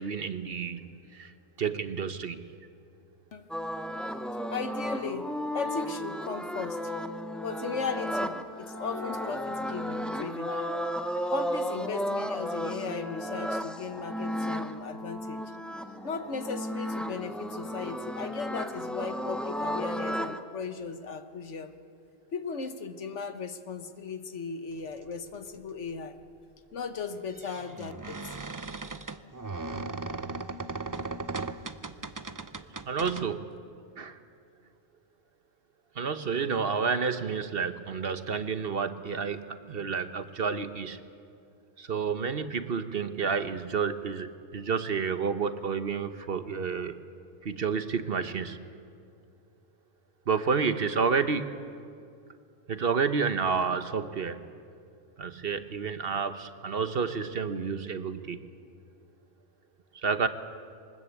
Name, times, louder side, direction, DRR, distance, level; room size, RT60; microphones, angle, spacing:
voice 1, 0.0-1.3 1.6-2.4 32.9-33.4 34.0-34.2 36.0-41.0 41.8-47.0 47.4-48.6 50.3-51.5 52.7-54.4 55.2-58.4 60.0-60.3, right 5 dB, 55° right, 11 dB, 1.1 m, -30 dB
sound 1, 3.5-20.4, equal, ahead, 0.8 m, -34 dB
voice 2, 4.5-6.9 7.4-10.9 11.3-15.4 16.0-21.7 22.3-26.2 26.7-28.3, left 5 dB, 75° left, 9 dB, 1.5 m, -37 dB
sound 2, 25.5-25.6 27.1-33.2, right 3 dB, 25° right, 0.5 m, -37 dB
23.5 x 20.5 x 8.4 m, 2.3 s
omnidirectional pair, 1.2 m